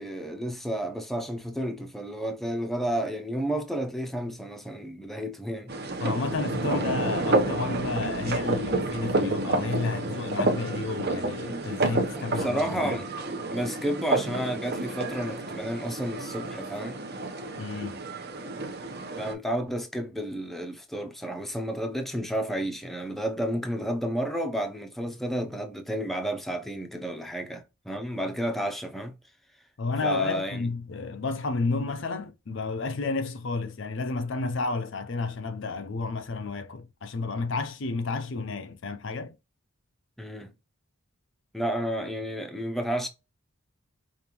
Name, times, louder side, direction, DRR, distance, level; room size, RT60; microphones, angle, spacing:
voice 1, 0.0-5.8 12.2-13.1 13.5-17.0 19.2-29.2 30.0-30.7 40.2-40.5 41.5-43.1, equal, ahead, 0.6 m, -31 dB
sound 1, 5.7-19.3, right 2 dB, 45° right, 0.8 m, -30 dB
voice 2, 6.0-13.0 17.6-18.0 29.8-39.4, left 3 dB, 55° left, 0.5 m, -31 dB
5.1 x 2.5 x 2.9 m
head